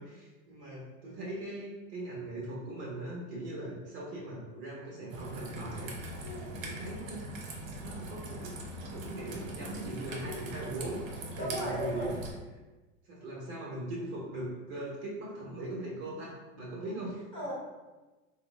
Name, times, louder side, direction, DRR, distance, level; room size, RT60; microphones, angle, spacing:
voice 1, 0.0-6.0 6.3-7.2 7.7-8.5 8.9-11.0 11.3-12.2 13.0-17.2, right 1 dB, 50° right, -4 dB, 1.0 m, -40 dB
Raindrop / Trickle dribble, 5.1-12.3, right 1 dB, 80° right, 0.7 m, -42 dB
voice 2, 6.2-6.5 10.1-10.3 11.4-12.1 17.3-17.5, equal, 10° left, -8 dB, 1.2 m, -36 dB
3.1 x 2.0 x 3.2 m, 1.2 s
supercardioid pair, 125°, 39 cm